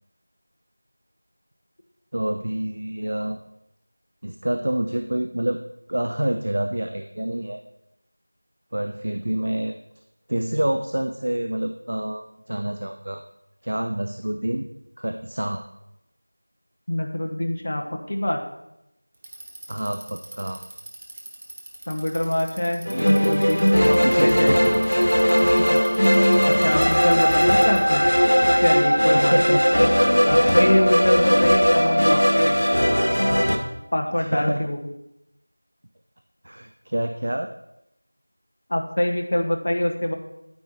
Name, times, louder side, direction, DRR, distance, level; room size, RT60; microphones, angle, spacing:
voice 1, 2.1-3.4 4.2-5.6 5.9-7.6 8.7-9.8 10.3-13.2 13.6-14.7 15.0-15.6 19.7-20.6 22.9-23.1 24.0-25.8 27.1-27.3 29.1-29.6 34.2-34.6 36.4-37.5, right 1 dB, 40° right, 6 dB, 0.6 m, -27 dB
voice 2, 16.9-18.4 21.9-24.5 26.4-28.1 28.6-29.9 30.2-32.7 33.9-34.8 38.7-40.1, left 1 dB, 30° left, 3 dB, 1.0 m, -25 dB
Bicycle, 19.1-28.0, right 1 dB, 20° right, 1.0 m, -41 dB
sound 1, 22.9-33.6, equal, 75° left, 1.7 m, -18 dB
9.4 x 9.2 x 4.3 m, 0.86 s
figure-of-eight pair, 175°, 0 cm